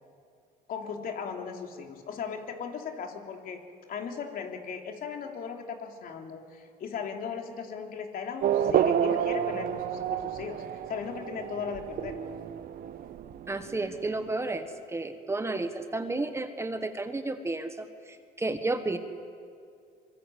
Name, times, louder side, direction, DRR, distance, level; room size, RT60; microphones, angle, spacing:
voice 1, 0.7-3.6 3.9-12.2, left 6 dB, 60° left, 3 dB, 3.2 m, -37 dB
Race car auto racing / Accelerating revving vroom, 8.4-14.5, right 9 dB, 60° right, 1.1 m, -30 dB
voice 2, 13.5-19.0, right 2 dB, 15° right, 8 dB, 1.4 m, -32 dB
24.0 x 23.5 x 8.5 m, 2.4 s
cardioid pair, 110°, 17 cm